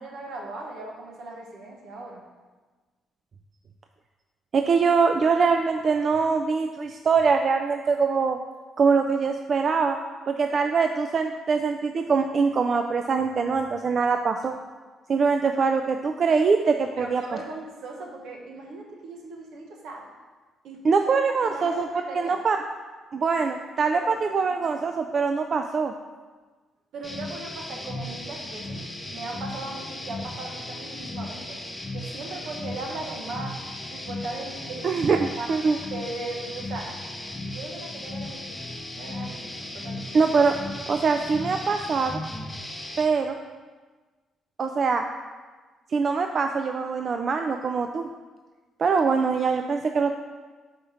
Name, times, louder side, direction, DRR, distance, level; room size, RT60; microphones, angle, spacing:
voice 1, 0.0-2.2 17.0-20.1 20.6-22.4 23.9-24.2 24.5-24.8 26.9-28.8 29.1-31.6 31.9-33.6 33.9-35.5 35.9-36.9 37.4-40.2, right 2 dB, 80° right, 0 dB, 1.1 m, -38 dB
voice 2, 4.5-8.4 8.8-10.0 10.3-14.5 15.1-17.2 20.8-21.9 22.1-22.6 23.1-25.9 34.8-35.2 35.5-35.8 40.1-40.6 40.9-42.2 43.0-43.4 44.6-45.0 45.9-48.1 48.8-50.1, right 5 dB, 50° right, 6 dB, 0.3 m, -23 dB
sound 1, 27.0-43.1, left 1 dB, 10° left, 0.7 m, -36 dB
4.7 x 4.3 x 5.6 m, 1.3 s
cardioid pair, 90°, 0 cm